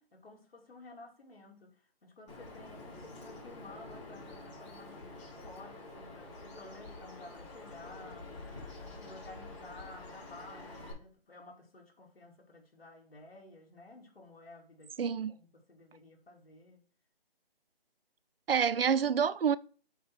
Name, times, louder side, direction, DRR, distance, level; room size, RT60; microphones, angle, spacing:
voice 1, 0.0-8.4 9.0-16.8, left 2 dB, 70° left, 2.5 m, -53 dB
Bird vocalization bird call bird song, 2.3-10.9, left 2 dB, 30° left, 3.0 m, -48 dB
voice 2, 15.0-15.4 18.5-19.6, right 7 dB, 70° right, 0.5 m, -27 dB
7.3 x 3.0 x 6.0 m
hypercardioid pair, 175°, 31 cm